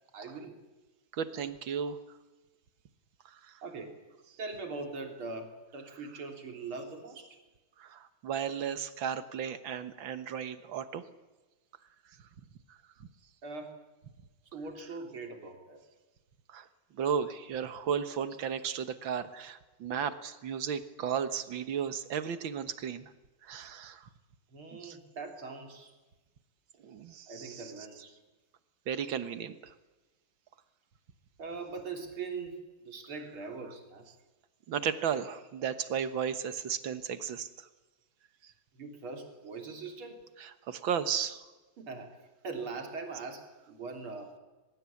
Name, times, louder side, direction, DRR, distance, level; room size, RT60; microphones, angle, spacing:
voice 1, 0.1-0.6 3.6-4.0 4.4-7.4 13.4-13.7 14.5-15.8 24.5-25.9 27.3-28.1 31.4-34.1 38.7-40.2 41.8-42.1 42.4-44.3, right 4 dB, 85° right, 4 dB, 4.1 m, -41 dB
voice 2, 1.1-2.0 3.5-3.6 7.8-11.0 16.5-16.7 16.9-23.1 23.4-24.0 24.8-25.0 26.8-27.7 28.9-29.7 34.7-37.7 40.4-41.5, right 7 dB, 70° right, 11 dB, 2.1 m, -34 dB
22.5 x 21.5 x 8.5 m, 1.1 s
omnidirectional pair, 2.2 m